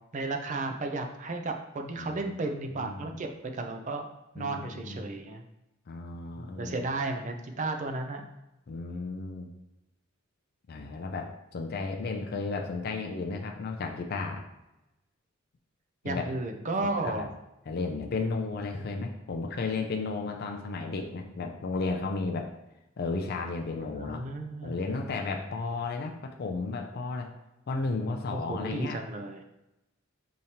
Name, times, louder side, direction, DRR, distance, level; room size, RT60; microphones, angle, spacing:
voice 1, 0.1-4.1 4.3-5.4 6.4-8.2 16.0-17.3 23.9-24.8 28.3-29.4, right 2 dB, 35° right, 5 dB, 0.4 m, -33 dB
voice 2, 2.7-3.2 4.4-5.1 5.9-6.8 8.7-9.5 10.7-14.4 16.0-16.2 17.0-17.3 17.7-22.5 23.0-24.2 24.6-27.3 27.7-29.0, left 3 dB, 50° left, 2 dB, 0.4 m, -33 dB
4.9 x 2.9 x 2.8 m, 0.94 s
head